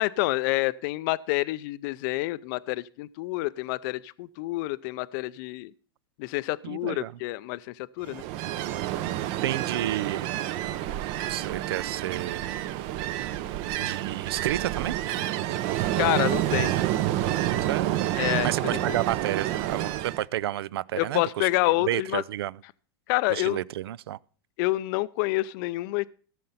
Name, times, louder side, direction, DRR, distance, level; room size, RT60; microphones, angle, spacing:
voice 1, 0.0-5.7 6.2-8.2 16.0-16.7 18.1-19.0 21.0-22.2 23.1-23.6 24.6-26.1, left 19 dB, 55° left, 0.4 m, -28 dB
voice 2, 6.6-7.2 9.0-10.3 10.9-12.6 13.8-14.9 17.7-18.1 18.4-21.5 21.8-22.6 23.3-24.2, right 13 dB, 85° right, 0.4 m, -31 dB
Ocean, 8.1-20.2, right 13 dB, 50° right, 0.7 m, -29 dB
15.0 x 6.6 x 5.6 m
supercardioid pair, 125°, 13 cm